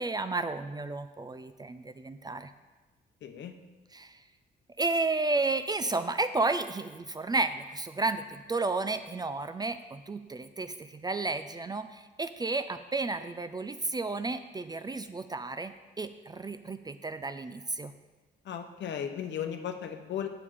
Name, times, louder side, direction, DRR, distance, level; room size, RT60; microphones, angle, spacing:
voice 1, 0.0-2.5 3.9-4.2 4.8-17.9, right 3 dB, 20° right, 10 dB, 0.4 m, -32 dB
voice 2, 3.2-3.5 18.5-20.3, left 9 dB, 65° left, 6 dB, 0.9 m, -36 dB
7.5 x 7.0 x 4.9 m, 1.2 s
cardioid pair, 90°, 20 cm